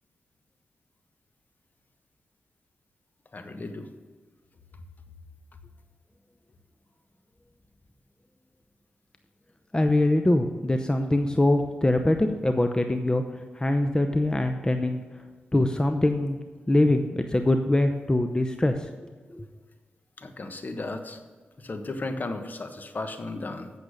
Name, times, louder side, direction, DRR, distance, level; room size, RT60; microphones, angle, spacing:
voice 1, 3.3-3.9 20.2-21.2 21.6-23.7, left 2 dB, 45° left, 7 dB, 1.3 m, -35 dB
voice 2, 9.7-13.2 13.6-15.0 15.5-16.4 16.7-19.5, left 1 dB, 20° left, 6 dB, 0.8 m, -23 dB
8.6 x 6.9 x 6.6 m, 1.4 s
cardioid pair, 50°, 4 cm